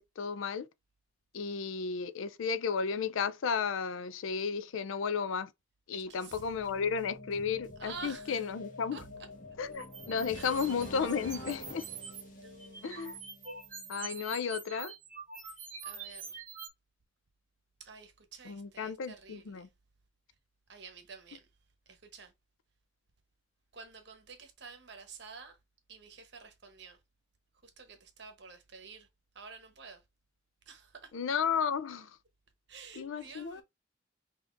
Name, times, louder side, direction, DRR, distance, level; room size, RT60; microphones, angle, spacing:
voice 1, 0.2-0.7 1.3-5.5 5.9-9.0 9.6-11.9 12.8-13.2 13.9-14.9 18.5-19.7 31.1-32.2 33.0-33.6, left 6 dB, 90° left, 0.5 m, -33 dB
voice 2, 5.9-6.7 7.8-8.5 8.9-9.0 10.3-10.6 12.3-13.1 15.4-16.4 17.8-19.7 20.7-21.5 21.9-22.3 23.7-25.6 25.9-27.0 27.6-29.1 29.3-30.0 30.7-31.1 32.7-33.6, right 5 dB, 60° right, 1.0 m, -50 dB
sound 1, 6.3-14.2, left 1 dB, 40° left, 1.1 m, -48 dB
sound 2, 9.7-12.2 12.6-16.7, right 5 dB, 40° right, 1.3 m, -45 dB
5.7 x 2.8 x 2.5 m
head